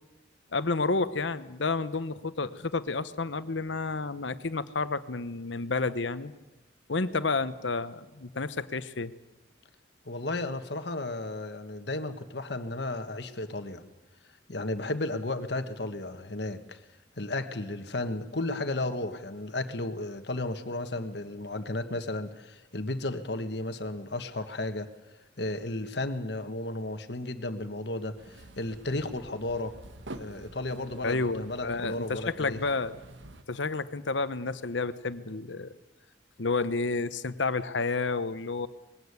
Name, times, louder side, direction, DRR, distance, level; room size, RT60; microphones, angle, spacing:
voice 1, 0.5-6.3 6.9-9.1 31.0-32.9 33.5-35.7 36.4-38.7, left 3 dB, 80° left, 13 dB, 1.0 m, -30 dB
voice 2, 10.0-13.8 14.5-16.8 17.2-24.9 25.4-29.7 30.2-32.6, left 2 dB, 65° left, 8 dB, 1.5 m, -34 dB
sound 1, 28.2-33.4, right 2 dB, 85° right, 1.4 m, -48 dB
21.0 x 16.5 x 9.8 m, 1.1 s
head